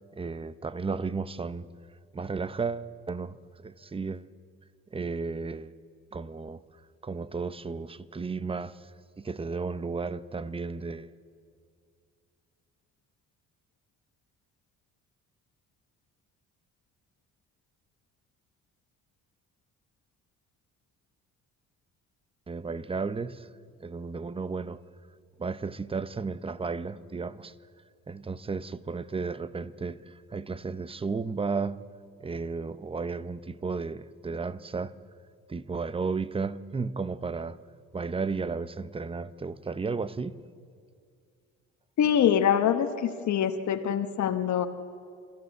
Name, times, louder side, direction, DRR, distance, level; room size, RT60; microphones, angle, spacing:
voice 1, 0.1-1.7 2.1-3.4 3.6-4.3 4.9-5.7 6.1-6.6 7.0-8.8 9.2-11.1 22.5-23.5 23.8-24.8 25.4-27.5 28.1-31.8 32.2-34.9 35.5-37.6 37.9-40.4, right 4 dB, 20° right, 0.7 m, -33 dB
voice 2, 42.0-44.7, left 9 dB, 70° left, 1.1 m, -24 dB
29.5 x 13.5 x 8.1 m
cardioid pair, 90°, 30 cm